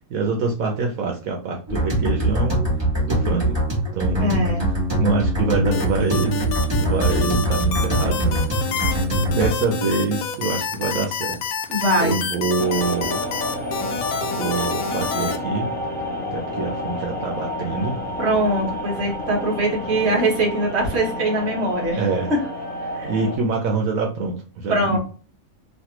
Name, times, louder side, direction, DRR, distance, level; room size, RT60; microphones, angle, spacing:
voice 1, 0.1-2.6 3.0-3.6 3.9-4.4 5.0-6.4 6.8-8.4 8.8-11.4 11.7-13.2 14.2-15.7 16.3-18.0 21.9-22.3 23.0-25.0, right 3 dB, 75° right, 0 dB, 1.1 m, -25 dB
sound 1, 1.7-9.5, right 1 dB, 20° right, 1.5 m, -22 dB
voice 2, 4.2-4.6 11.7-12.2 18.2-22.0 22.9-23.1 24.7-25.0, right 1 dB, 50° right, 1 dB, 1.3 m, -22 dB
sound 2, 5.7-15.4, left 6 dB, 90° left, 1.1 m, -28 dB
sound 3, 12.6-23.4, left 1 dB, 10° left, 0.4 m, -30 dB
3.2 x 2.6 x 2.8 m, 0.38 s
omnidirectional pair, 1.5 m